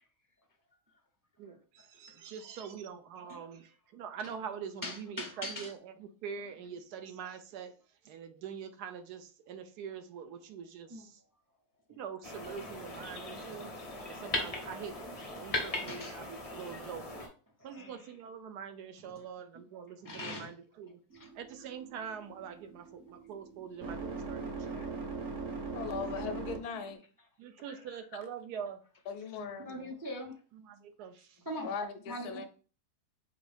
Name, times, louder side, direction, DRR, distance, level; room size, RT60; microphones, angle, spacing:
voice 1, 1.4-7.8 8.0-11.2 11.9-13.7 14.1-17.3 17.6-25.0 27.4-28.8 30.5-31.4, right 7 dB, 80° right, 1.2 m, -44 dB
voice 2, 4.8-5.7 10.9-11.1 11.9-12.0 15.7-16.2 17.7-18.0 20.0-20.5 21.1-21.3 24.3-24.5 24.7-24.9 29.4-30.4 31.5-31.7 32.1-32.5, left 1 dB, 30° right, 0.3 m, -42 dB
sound 1, 12.2-17.3, left 2 dB, 35° left, 0.6 m, -39 dB
sound 2, 21.1-26.9, right 4 dB, 55° right, 1.2 m, -41 dB
voice 3, 25.7-27.0 29.1-29.7 31.6-32.5, left 5 dB, 80° left, 1.1 m, -38 dB
5.1 x 2.7 x 3.3 m
omnidirectional pair, 1.7 m